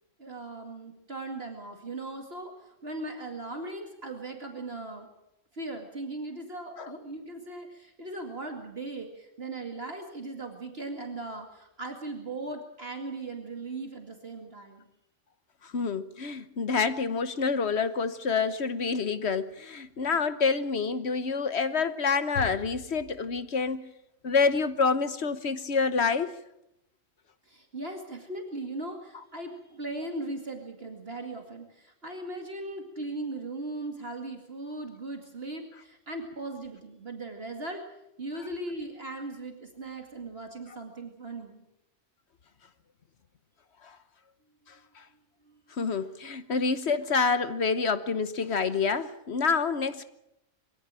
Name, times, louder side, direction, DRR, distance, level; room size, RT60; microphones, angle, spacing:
voice 1, 0.2-5.1 5.5-14.9 27.4-37.8 38.2-41.6 45.5-45.6, right 2 dB, 50° right, 2.4 m, -38 dB
voice 2, 15.6-23.9 24.2-26.3 43.8-44.0 45.0-45.1 45.8-50.0, left 5 dB, 60° left, 1.3 m, -27 dB
22.5 x 16.5 x 8.9 m
omnidirectional pair, 1.3 m